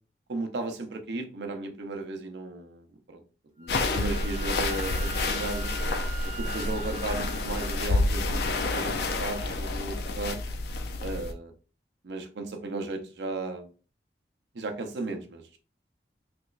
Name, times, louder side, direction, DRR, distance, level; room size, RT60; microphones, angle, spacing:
voice 1, 0.3-3.2 3.6-5.7 6.4-10.4 11.0-11.5 12.0-13.7 14.5-15.4, right 3 dB, 75° right, 5 dB, 0.6 m, -35 dB
Wind instrument woodwind instrument, 3.6-7.8, right 6 dB, 25° right, 0.8 m, -42 dB
sound 1, 3.7-11.3, left 2 dB, 60° left, 0.4 m, -29 dB
3.3 x 3.0 x 2.4 m, 0.36 s
head